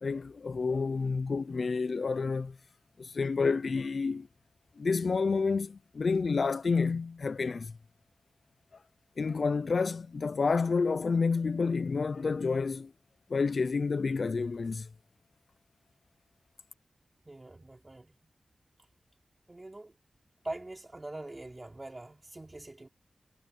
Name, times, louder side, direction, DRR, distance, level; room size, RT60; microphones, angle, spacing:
voice 1, 0.0-2.6 3.0-4.3 4.8-7.7 9.2-12.9 13.3-14.9, left 4 dB, 55° left, 0.5 m, -29 dB
voice 2, 17.3-18.1 19.5-19.9 20.4-22.9, right 2 dB, 20° right, 4.0 m, -43 dB
wide cardioid pair, 125°, 0 cm